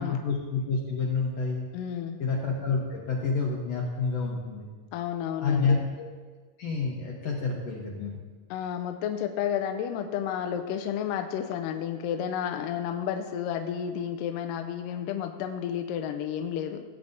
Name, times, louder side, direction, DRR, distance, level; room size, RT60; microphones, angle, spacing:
voice 1, 0.0-1.7 2.2-4.7 5.4-6.1 6.6-8.1, left 4 dB, 60° left, -2 dB, 1.9 m, -28 dB
voice 2, 1.7-2.2 4.9-5.8 8.5-16.8, left 9 dB, 80° left, 6 dB, 2.2 m, -31 dB
17.5 x 8.5 x 2.7 m, 1.4 s
omnidirectional pair, 3.9 m